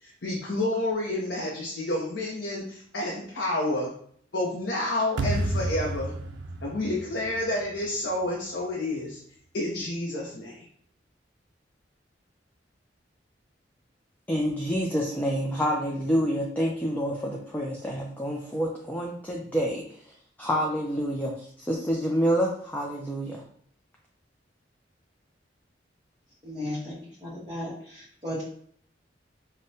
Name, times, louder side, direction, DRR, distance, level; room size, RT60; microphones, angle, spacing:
voice 1, 0.0-3.9 4.3-6.1 6.6-9.2 9.5-10.6, left 1 dB, 70° left, -3 dB, 0.6 m, -29 dB
sound 1, 5.2-8.3, right 1 dB, 85° right, 0.4 m, -31 dB
voice 2, 14.3-19.8 20.4-23.4, equal, 10° left, -2 dB, 0.4 m, -28 dB
voice 3, 26.4-26.9 27.2-28.4, left 1 dB, 25° right, -10 dB, 1.0 m, -35 dB
5.0 x 2.1 x 2.7 m, 0.62 s
head